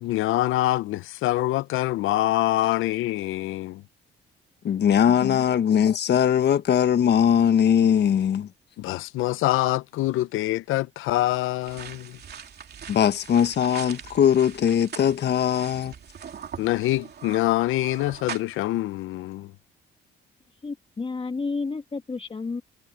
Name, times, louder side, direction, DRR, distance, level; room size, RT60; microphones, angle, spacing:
voice 1, 0.0-3.8 5.1-5.4 8.8-12.2 16.6-19.5, left 16 dB, 90° left, 0.7 m, -25 dB
voice 2, 4.6-8.5 12.9-15.9, left 9 dB, 60° left, 1.4 m, -20 dB
sound 1, 11.6-18.6, right 7 dB, 55° right, 3.0 m, -41 dB
voice 3, 20.6-22.6, left 4 dB, 25° left, 1.5 m, -31 dB
cardioid pair, 90°, 20 cm